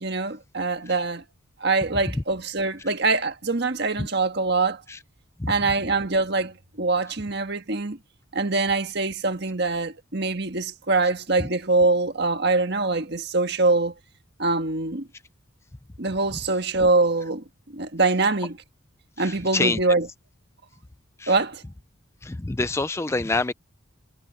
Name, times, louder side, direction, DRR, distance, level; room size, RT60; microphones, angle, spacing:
voice 1, 0.0-1.2 1.6-4.8 5.5-8.0 8.3-13.9 14.4-15.1 16.0-18.6 19.2-20.1 21.3-21.6, right 3 dB, 55° right, 1.6 m, -24 dB
voice 2, 22.2-23.5, left 3 dB, 15° left, 0.4 m, -25 dB
head